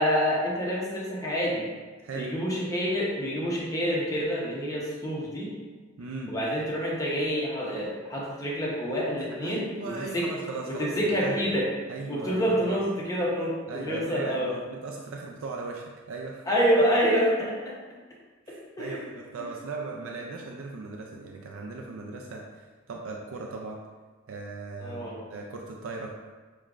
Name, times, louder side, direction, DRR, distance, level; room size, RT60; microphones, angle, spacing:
voice 1, 0.0-1.6 2.1-5.5 6.3-10.3 10.7-11.7 12.1-14.5 16.5-17.7 18.5-19.1 19.4-19.5 24.8-25.2, equal, 15° left, -5 dB, 0.8 m, -27 dB
voice 2, 2.0-2.3 6.0-6.3 9.4-11.4 11.9-12.8 13.7-16.5 18.5-23.8 24.3-26.3, right 3 dB, 75° right, 0 dB, 0.4 m, -38 dB
6.3 x 2.3 x 2.4 m, 1.4 s
head